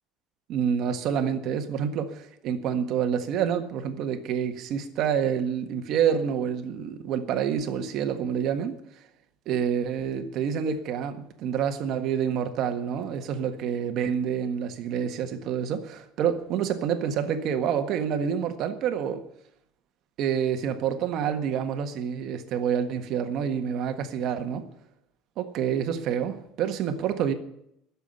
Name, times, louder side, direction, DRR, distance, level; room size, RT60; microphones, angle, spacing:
voice 1, 0.5-8.8 9.4-19.2 20.2-24.6 25.4-27.3, right 8 dB, 45° right, 1.6 m, -28 dB
13.0 x 7.2 x 9.6 m
cardioid pair, 160°, 0 cm